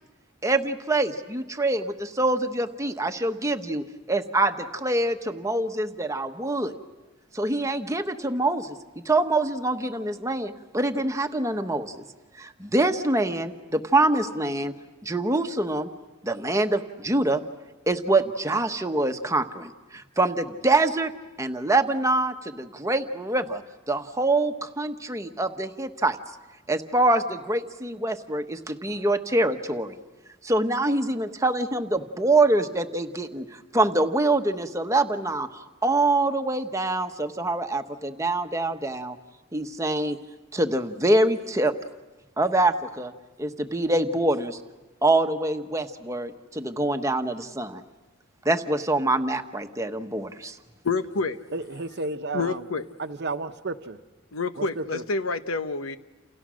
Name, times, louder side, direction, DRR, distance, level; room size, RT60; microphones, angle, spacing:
voice 1, 0.4-6.7 7.3-8.8 9.0-12.0 12.4-14.7 15.0-15.9 16.2-17.4 17.9-21.1 21.4-23.6 23.9-26.2 26.7-30.0 30.4-39.2 39.5-40.2 40.5-41.7 42.4-43.1 43.4-44.6 45.0-47.8 48.4-50.6, right 2 dB, 15° right, 1.1 m, -25 dB
voice 2, 50.8-51.4 52.3-52.8 54.3-56.0, left 4 dB, 80° left, 1.1 m, -28 dB
voice 3, 51.5-52.7 53.0-54.0 54.6-55.0, right 3 dB, 55° right, 0.9 m, -32 dB
29.0 x 29.0 x 6.3 m
head